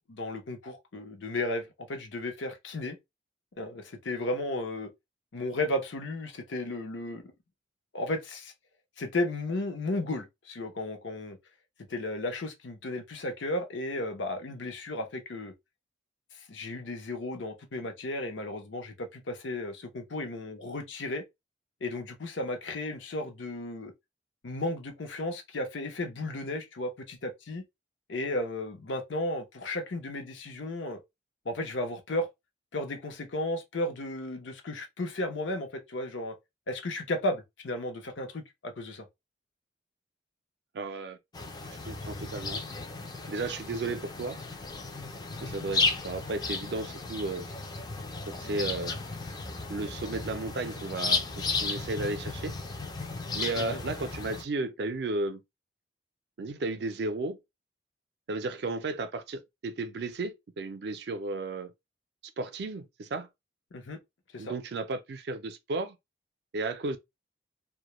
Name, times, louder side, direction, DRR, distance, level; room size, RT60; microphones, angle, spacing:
voice 1, 0.1-3.0 3.6-4.9 5.3-7.2 7.9-8.5 9.0-11.4 11.9-15.5 16.3-21.2 21.8-23.9 24.4-27.6 28.1-31.0 31.4-32.3 32.7-36.3 36.7-39.0 53.5-53.8 63.7-64.0 64.3-64.5, left 1 dB, 85° left, 0.7 m, -34 dB
voice 2, 40.7-41.2 41.9-42.6 43.3-44.4 45.4-47.5 48.3-49.0 49.7-52.6 53.3-55.4 56.4-57.4 58.3-61.7 62.4-63.3 64.4-66.0 66.5-67.0, right 3 dB, 60° right, 0.4 m, -34 dB
sound 1, 41.3-54.4, left 3 dB, 20° left, 0.3 m, -34 dB
2.2 x 2.0 x 2.9 m
head